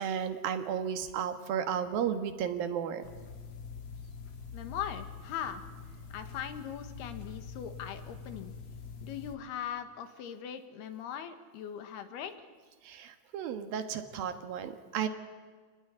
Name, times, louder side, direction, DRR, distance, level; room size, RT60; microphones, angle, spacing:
voice 1, 0.0-3.1 12.8-15.1, right 8 dB, 70° right, 8 dB, 3.2 m, -33 dB
sound 1, 3.0-9.4, left 5 dB, 45° left, 2.3 m, -45 dB
voice 2, 4.5-5.6 6.1-8.5 9.0-12.3, left 9 dB, 80° left, 9 dB, 3.6 m, -40 dB
28.5 x 19.5 x 9.7 m, 1.5 s
omnidirectional pair, 4.5 m